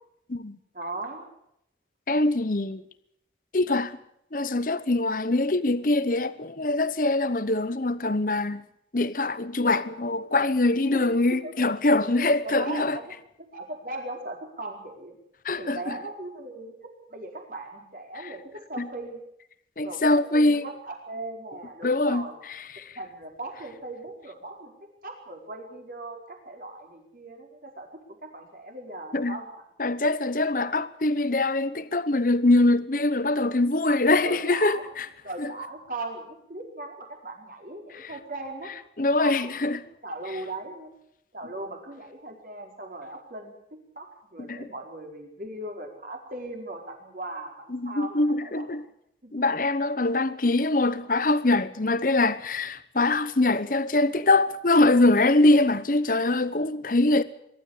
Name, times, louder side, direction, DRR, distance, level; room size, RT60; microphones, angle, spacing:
voice 1, 0.7-1.3 10.9-11.5 12.1-13.1 13.5-15.1 15.6-16.7 17.1-18.4 18.7-19.2 19.8-22.4 23.0-24.7 25.0-27.9 28.2-29.6 34.2-34.8 35.2-38.7 39.2-39.5 40.0-40.9 41.3-48.7 50.0-50.1, right 2 dB, 50° right, 4.7 m, -38 dB
voice 2, 2.1-2.8 3.5-4.0 4.3-8.6 8.9-13.0 15.4-15.9 18.8-18.9 19.8-20.6 21.8-22.3 22.7-22.9 29.1-29.4 29.8-35.1 35.4-35.5 38.0-38.1 39.0-39.8 44.5-44.7 47.7-48.8 49.3-57.2, left 2 dB, 50° left, 0.9 m, -23 dB
23.0 x 12.5 x 9.9 m
head